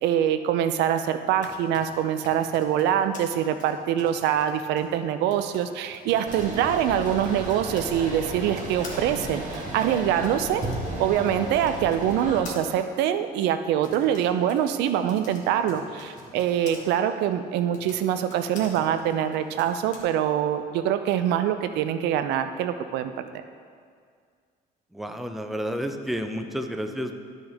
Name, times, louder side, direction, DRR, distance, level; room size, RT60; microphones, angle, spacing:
voice 1, 0.0-10.6 11.0-23.4, right 10 dB, 85° right, 10 dB, 0.5 m, -24 dB
Typing, 1.1-7.9 8.5-16.8 17.6-20.0, left 3 dB, 50° left, 1.6 m, -48 dB
sound 1, 6.2-12.4, right 1 dB, 50° right, 1.7 m, -34 dB
voice 2, 24.9-27.2, equal, ahead, 5 dB, 0.5 m, -31 dB
12.0 x 5.4 x 3.5 m, 2.1 s
cardioid pair, 110°, 17 cm